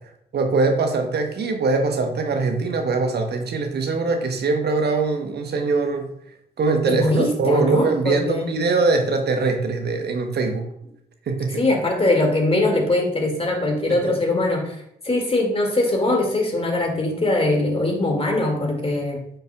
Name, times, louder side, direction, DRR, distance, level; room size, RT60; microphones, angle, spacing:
voice 1, 0.3-6.1 6.6-10.7 11.3-11.6 13.9-14.2, right 3 dB, 60° right, 4 dB, 1.0 m, -22 dB
voice 2, 6.9-8.5 11.5-14.8 15.0-19.2, left 2 dB, 30° left, 2 dB, 2.2 m, -21 dB
8.8 x 5.4 x 2.3 m, 0.74 s
hypercardioid pair, 40°, 19 cm